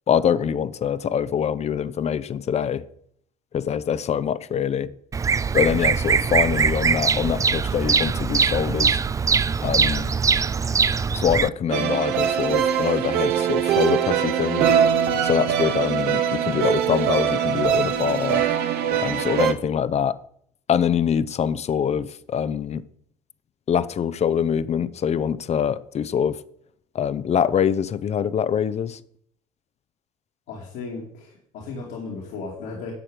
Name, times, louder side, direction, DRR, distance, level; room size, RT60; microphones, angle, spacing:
voice 1, 0.1-2.8 3.5-4.9 5.5-9.0 9.6-10.1 11.1-14.7 15.2-18.4 19.0-20.2 20.7-22.8 23.7-26.4 26.9-29.0, left 8 dB, 35° left, 0.7 m, -24 dB
Bird vocalization bird call bird song, 5.1-11.5, right 5 dB, 20° right, 0.3 m, -22 dB
sound 1, 11.7-19.5, right 9 dB, 60° right, 1.0 m, -22 dB
voice 2, 30.5-32.9, left 4 dB, 65° left, 2.4 m, -35 dB
11.0 x 7.3 x 5.1 m
hypercardioid pair, 60°, 18 cm